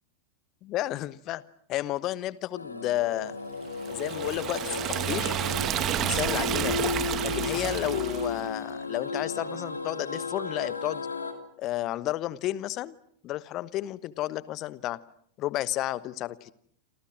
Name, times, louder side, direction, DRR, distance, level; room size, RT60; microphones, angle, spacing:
voice 1, 0.6-1.4 1.7-3.4 3.9-5.4 6.0-6.9 7.2-11.1 11.6-12.9 13.2-15.0 15.4-16.5, left 15 dB, 35° left, 18 dB, 1.2 m, -32 dB
sound 1, 2.6-11.3, left 4 dB, 80° left, 2.8 m, -34 dB
Liquid, 3.8-8.4, right 11 dB, 30° right, 2.2 m, -30 dB
28.0 x 28.0 x 6.3 m, 0.63 s
figure-of-eight pair, 90°, 0 cm